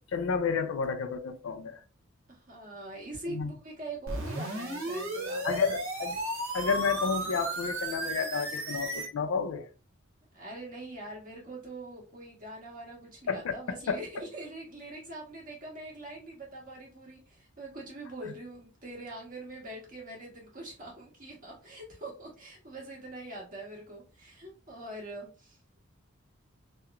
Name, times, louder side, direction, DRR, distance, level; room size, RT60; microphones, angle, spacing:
voice 1, 0.0-1.8 3.3-3.5 5.4-6.2 6.5-9.7 13.3-13.6 13.9-14.0, left 5 dB, 70° left, 0.4 m, -31 dB
voice 2, 2.3-5.7 10.3-25.8, right 2 dB, 40° right, 1.2 m, -43 dB
sound 1, 4.1-9.1, right 1 dB, 85° right, 1.0 m, -34 dB
2.8 x 2.1 x 2.3 m
head